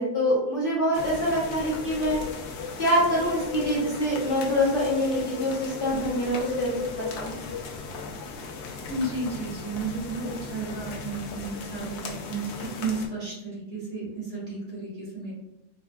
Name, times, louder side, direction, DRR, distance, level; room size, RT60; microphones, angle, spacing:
voice 1, 0.0-2.2 2.8-6.7 7.0-7.3, equal, 40° left, -10 dB, 0.9 m, -25 dB
sound 1, 0.9-13.1, left 4 dB, 80° left, 0.6 m, -36 dB
voice 2, 8.9-15.3, right 3 dB, 50° right, -8 dB, 1.7 m, -33 dB
4.0 x 2.3 x 2.3 m, 0.88 s
omnidirectional pair, 1.7 m